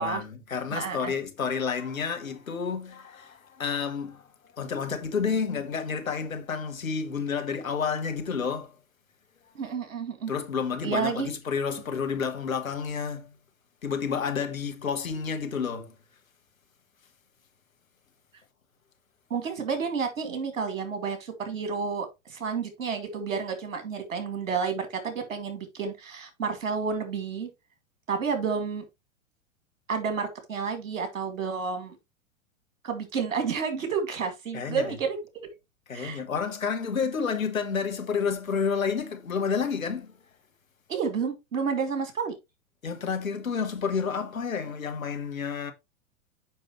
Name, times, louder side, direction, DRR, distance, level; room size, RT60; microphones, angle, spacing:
voice 1, 0.0-8.7 10.3-13.4 13.8-15.9 34.5-34.9 35.9-40.1 42.8-45.7, left 6 dB, 75° left, 1.4 m, -30 dB
voice 2, 0.7-1.1 9.5-10.3 10.8-11.3 19.3-27.5 28.1-28.8 29.9-32.0 32.8-35.2 35.9-36.2 40.9-42.3, right 5 dB, 65° right, 2.2 m, -30 dB
7.0 x 5.5 x 3.1 m
figure-of-eight pair, 100°, 41 cm